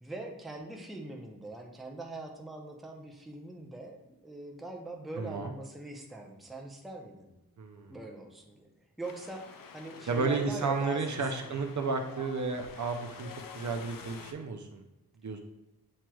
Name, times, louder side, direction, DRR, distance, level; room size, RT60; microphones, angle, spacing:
voice 1, 0.0-7.3 7.9-8.7 9.0-11.7, right 2 dB, ahead, 1 dB, 0.5 m, -42 dB
voice 2, 5.2-5.5 7.6-7.9 10.1-14.8 15.2-15.4, right 4 dB, 50° right, 3 dB, 0.5 m, -32 dB
Wind, 9.0-14.3, left 6 dB, 60° left, 0.5 m, -49 dB
7.3 x 3.0 x 2.3 m, 0.97 s
wide cardioid pair, 115°, 38 cm